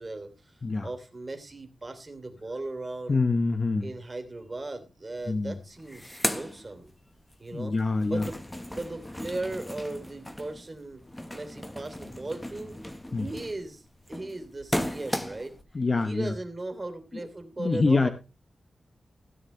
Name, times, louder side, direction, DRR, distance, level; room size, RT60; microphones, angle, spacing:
voice 1, 0.0-3.2 3.8-6.9 7.4-7.7 8.0-8.4 8.7-11.0 11.3-13.8 14.1-15.5 16.0-18.1, right 2 dB, 30° right, 6 dB, 3.0 m, -37 dB
voice 2, 3.1-3.9 5.3-5.6 7.5-8.3 13.1-13.3 15.7-16.4 17.1-17.3 17.6-18.1, left 3 dB, 40° left, 8 dB, 1.0 m, -26 dB
sound 1, 5.2-5.3 5.6-7.4 7.7-15.6, left 1 dB, 10° left, 1.3 m, -36 dB
16.5 x 9.7 x 3.2 m, 0.30 s
wide cardioid pair, 125°, 0 cm